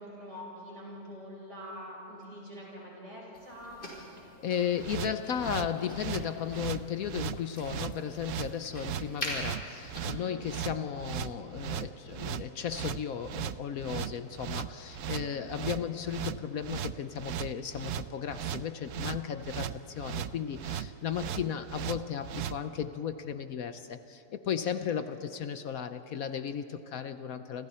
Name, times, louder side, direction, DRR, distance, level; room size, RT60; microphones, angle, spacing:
voice 1, 0.0-3.8 4.5-5.3 10.1-10.5 15.1-15.4 21.2-21.5, equal, 50° right, -4 dB, 7.5 m, -45 dB
sound 1, 3.3-10.0, left 1 dB, 40° left, 5.3 m, -44 dB
voice 2, 4.4-27.7, left 8 dB, 65° left, 10 dB, 1.2 m, -35 dB
sound 2, 4.8-22.6, right 10 dB, 65° right, 0.9 m, -37 dB
29.0 x 26.5 x 4.4 m, 3.0 s
omnidirectional pair, 1.7 m